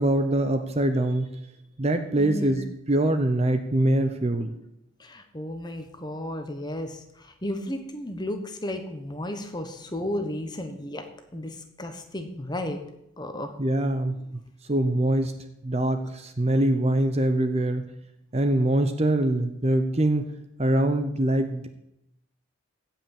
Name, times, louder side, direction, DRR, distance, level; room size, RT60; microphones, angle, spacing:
voice 1, 0.0-1.4 1.8-4.5 13.6-14.4 14.7-15.4 15.6-17.9 18.3-20.3 20.6-21.7, right 1 dB, 30° right, 8 dB, 0.8 m, -24 dB
voice 2, 2.2-2.6 5.0-11.0 11.3-12.8 13.2-13.5, left 1 dB, 20° left, 6 dB, 1.2 m, -33 dB
16.0 x 5.8 x 7.2 m, 0.81 s
head